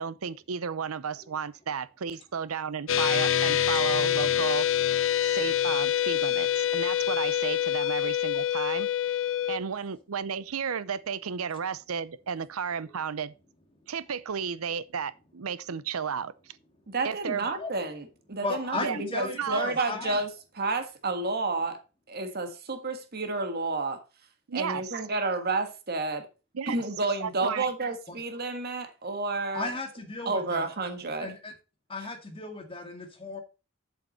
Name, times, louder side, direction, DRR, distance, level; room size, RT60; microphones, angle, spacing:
voice 1, 0.0-4.7 5.2-9.2 9.5-13.3 13.9-16.6 17.0-17.5 18.8-19.0 19.3-19.6 24.5-25.0 26.5-26.8 27.2-27.7, right 6 dB, 85° right, 0.6 m, -33 dB
sound 1, 2.9-9.6, left 11 dB, 65° left, 0.6 m, -26 dB
voice 2, 16.9-20.3 20.6-21.8 22.1-24.0 24.5-26.3 26.7-29.7 30.2-31.3, right 3 dB, 45° right, 1.5 m, -30 dB
voice 3, 18.4-20.2 28.1-28.2 29.5-30.7 31.2-31.5 31.9-33.4, left 2 dB, 25° left, 1.9 m, -35 dB
7.9 x 7.5 x 4.1 m
head